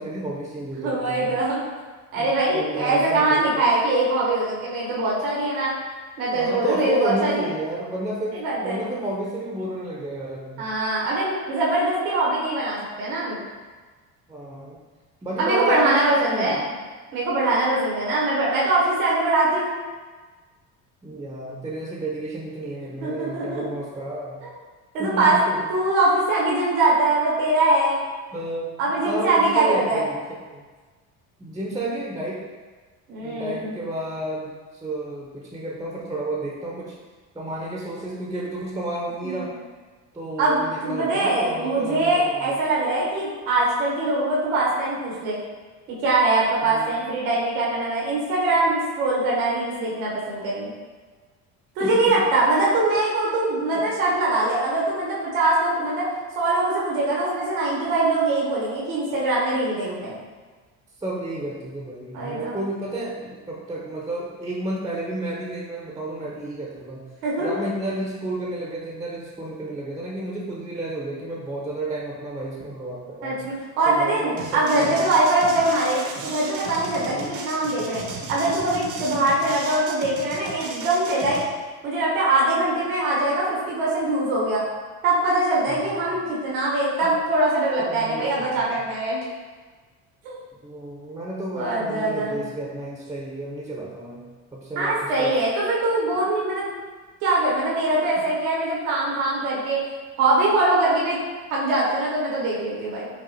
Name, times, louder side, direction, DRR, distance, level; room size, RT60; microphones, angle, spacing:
voice 1, 0.0-1.3 2.1-3.4 6.3-10.7 14.3-14.8 15.2-16.6 21.0-24.4 25.0-25.7 28.3-30.6 31.4-32.4 33.2-37.0 37.3-39.5 40.1-42.6 46.6-46.9 51.8-52.1 53.7-53.9 59.8-60.0 61.0-67.0 67.4-73.4 73.9-75.1 77.1-77.4 85.7-86.2 87.8-88.8 90.6-94.2 94.5-95.3, right 1 dB, 10° right, -3 dB, 0.6 m, -31 dB
voice 2, 0.7-1.6 2.1-5.7 6.2-7.5 8.3-8.8 10.6-13.4 15.4-16.7 17.1-19.7 23.0-23.6 24.4-24.5 24.9-25.4 25.7-28.0 28.8-30.0 33.1-33.8 39.2-39.4 40.4-45.4 46.0-50.7 51.8-56.0 56.3-60.2 62.1-62.5 67.2-67.5 73.2-78.0 78.3-81.4 81.8-84.6 85.0-89.2 90.2-90.4 91.5-92.4 94.7-96.7 97.2-99.8 100.2-101.2 101.5-103.1, right 2 dB, 85° right, -5 dB, 1.2 m, -22 dB
sound 1, 74.4-81.5, right 4 dB, 45° right, 0.7 m, -35 dB
5.1 x 2.4 x 2.8 m, 1.4 s
supercardioid pair, 75°, 41 cm